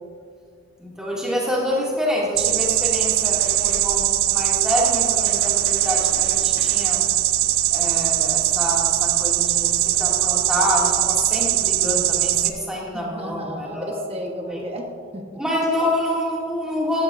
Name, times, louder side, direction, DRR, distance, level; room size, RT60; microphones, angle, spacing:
voice 1, 0.8-7.0 7.7-14.0 14.5-14.6 15.4-17.0, equal, 5° right, -5 dB, 2.2 m, -26 dB
sound 1, 2.4-12.5, right 13 dB, 85° right, 0.5 m, -21 dB
sound 2, 3.0-4.2 4.9-8.1, right 1 dB, 65° right, 3.2 m, -42 dB
voice 2, 12.9-15.2, equal, 25° right, 2 dB, 1.1 m, -33 dB
15.0 x 14.0 x 2.6 m, 2.3 s
head